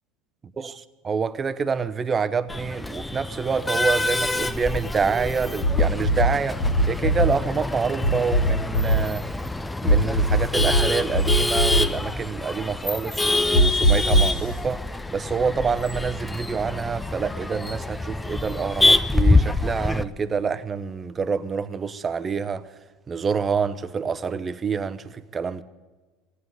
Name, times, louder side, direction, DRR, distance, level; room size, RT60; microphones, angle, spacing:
voice 1, 1.1-6.6 6.9-9.2 9.8-14.8 15.1-22.7 23.1-25.6, right 5 dB, 25° right, 0.8 m, -27 dB
Male speech man speaking / Laughter / Chatter, 2.5-20.0, left 2 dB, 10° left, 0.6 m, -26 dB
sound 1, 5.6-6.3 6.6-7.3 8.0-9.0 9.9-10.8 11.1-11.8 13.5-14.3, equal, 60° left, 2.3 m, -19 dB
15.5 x 9.6 x 9.6 m
supercardioid pair, 105°, 0 cm